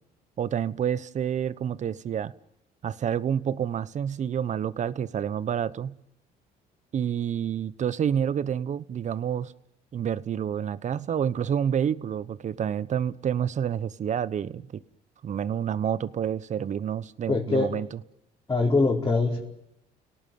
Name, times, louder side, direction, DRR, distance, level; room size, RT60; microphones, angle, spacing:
voice 1, 0.4-2.3 2.8-5.9 6.9-9.5 9.9-14.8 15.2-18.0, right 8 dB, 45° right, 1.1 m, -28 dB
voice 2, 17.3-17.7 18.5-19.4, left 3 dB, 20° left, 4.9 m, -23 dB
30.0 x 18.0 x 9.3 m
cardioid pair, 110°, 17 cm